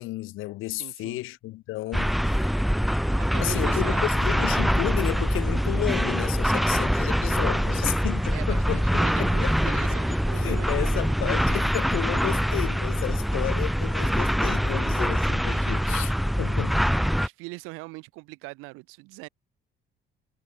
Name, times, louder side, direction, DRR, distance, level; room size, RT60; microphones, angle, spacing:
voice 1, 0.0-2.5 3.4-9.8 10.4-16.8, left 18 dB, 75° left, 1.4 m, -32 dB
voice 2, 0.8-1.2 3.2-4.0 8.3-11.7 15.5-16.0 17.2-19.3, right 24 dB, 85° right, 4.8 m, -41 dB
sound 1, 1.9-17.3, equal, ahead, 0.6 m, -24 dB
supercardioid pair, 90°, 21 cm